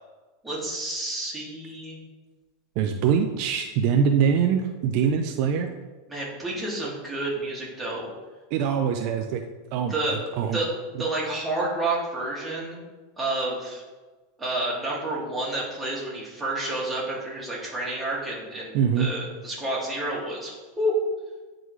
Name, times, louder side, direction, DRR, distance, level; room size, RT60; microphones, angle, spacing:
voice 1, 0.4-2.0 6.1-8.1 9.9-10.2 10.5-10.7 11.0-12.8 13.2-13.8 14.4-20.9, right 1 dB, 10° right, -6 dB, 2.1 m, -30 dB
voice 2, 2.8-5.7 8.5-9.4 9.7-10.6 18.7-19.1, right 7 dB, 55° right, 5 dB, 0.5 m, -23 dB
9.2 x 3.8 x 3.2 m, 1.3 s
supercardioid pair, 135°, 0 cm